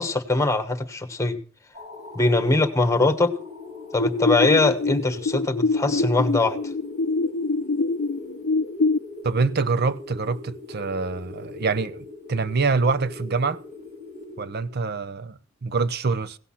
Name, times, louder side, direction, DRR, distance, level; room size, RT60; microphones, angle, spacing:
voice 1, 0.0-1.4 2.1-3.3 3.9-6.6, left 2 dB, 15° left, 1.3 m, -22 dB
sound 1, 1.7-15.0, left 2 dB, 35° right, 2.0 m, -40 dB
sound 2, 4.0-9.0, left 3 dB, 80° left, 0.6 m, -25 dB
voice 2, 9.2-13.6 14.4-16.4, right 4 dB, 50° right, 0.7 m, -25 dB
17.0 x 8.1 x 5.7 m
head